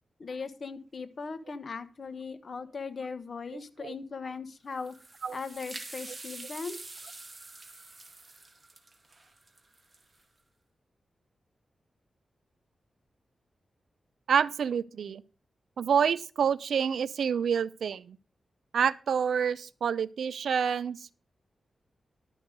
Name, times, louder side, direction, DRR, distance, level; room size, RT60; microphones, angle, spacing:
voice 1, 0.2-4.9 5.3-6.8, left 4 dB, 55° left, 1.0 m, -39 dB
voice 2, 3.5-3.9 5.2-5.4 14.3-15.2 15.8-18.2 18.7-21.1, right 7 dB, 85° right, 0.5 m, -28 dB
sound 1, 4.7-10.2, right 2 dB, 30° right, 2.0 m, -46 dB
11.5 x 6.3 x 5.2 m
cardioid pair, 80°, 0 cm